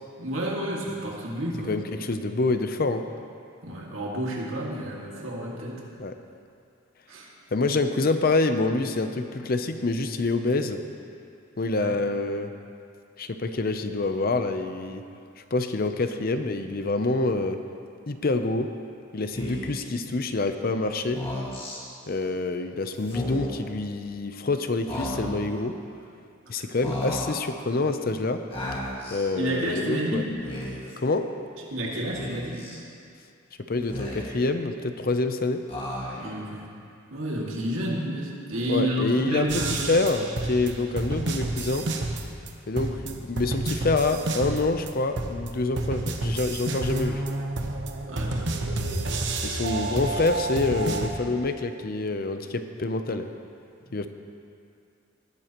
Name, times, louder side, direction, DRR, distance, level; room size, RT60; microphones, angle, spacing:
voice 1, 0.2-1.8 3.6-5.8 7.1-7.3 11.8-11.9 29.3-30.4 31.7-32.7 36.1-36.7 37.1-39.9 48.1-48.4 53.9-54.1, right 1 dB, 80° right, -3 dB, 2.2 m, -30 dB
voice 2, 1.7-3.0 6.0-6.1 7.5-10.8 11.6-12.5 13.2-15.0 15.5-17.6 18.1-18.7 19.1-21.2 22.1-25.8 26.5-28.4 29.1-30.2 31.0-31.3 33.7-35.6 38.7-41.9 42.7-47.2 49.4-53.3 53.9-54.1, left 3 dB, 45° left, 8 dB, 0.6 m, -26 dB
Speech, 19.3-19.8 21.0-21.8 23.0-23.7 24.9-25.6 26.8-27.5 28.5-29.3 30.3-31.0 32.1-32.8 33.7-34.5 35.7-36.4, left 1 dB, 25° left, 1.9 m, -34 dB
sound 1, 39.5-42.5 42.8-44.9 45.2-51.1, right 2 dB, 60° right, 1.0 m, -30 dB
19.0 x 11.5 x 3.0 m, 2.4 s
head